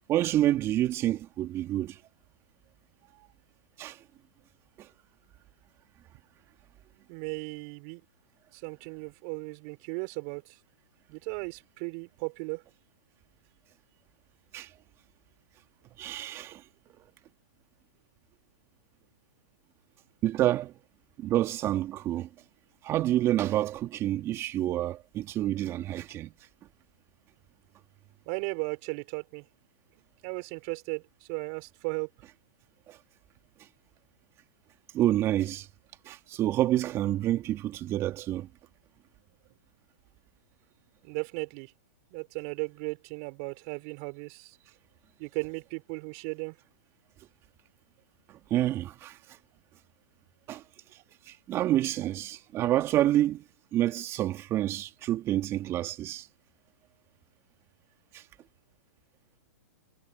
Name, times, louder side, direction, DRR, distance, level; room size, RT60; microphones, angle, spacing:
voice 1, 0.1-2.0 3.8-4.0 14.5-14.7 16.0-16.6 20.2-20.7 21.2-22.3 22.8-26.3 32.9-33.0 34.9-35.7 36.1-38.5 48.5-49.2 50.5-50.6 51.3-53.4 53.7-56.3, right 13 dB, 30° right, 2.6 m, -28 dB
voice 2, 7.1-8.0 8.5-10.5 11.1-12.6 28.3-29.4 30.2-32.1 41.0-41.7 42.1-44.5 45.2-46.6, right 37 dB, 45° right, 5.4 m, -36 dB
hypercardioid pair, 130°, 9 cm